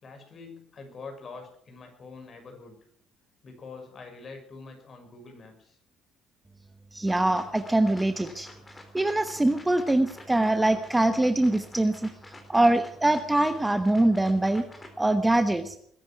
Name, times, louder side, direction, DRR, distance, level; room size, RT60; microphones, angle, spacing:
voice 1, 0.0-2.8 3.4-5.8, left 4 dB, 35° left, 4 dB, 6.0 m, -45 dB
voice 2, 6.9-8.5 8.9-12.1 12.5-14.6 15.0-15.8, right 1 dB, 10° right, 8 dB, 1.1 m, -23 dB
sound 1, 7.1-14.9, left 2 dB, 15° left, 3.8 m, -49 dB
21.5 x 10.5 x 6.0 m, 0.65 s
cardioid pair, 120°, 0 cm